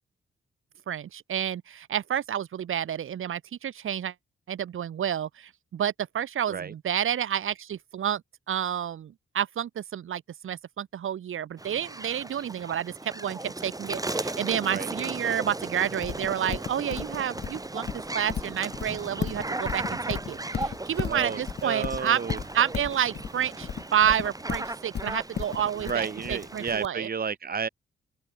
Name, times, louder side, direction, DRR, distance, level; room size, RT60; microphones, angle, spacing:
voice 1, 0.9-4.1 4.5-8.2 8.5-22.2 22.5-27.1, right 9 dB, 75° right, 6.6 m, -29 dB
sound 1, 11.6-26.8, right 2 dB, 15° right, 5.9 m, -36 dB
Livestock farm animals working animals, 16.0-26.9, left 7 dB, 55° left, 2.5 m, -35 dB
voice 2, 21.1-22.4 25.7-27.7, right 6 dB, 45° right, 3.3 m, -32 dB
open air
cardioid pair, 90°, 21 cm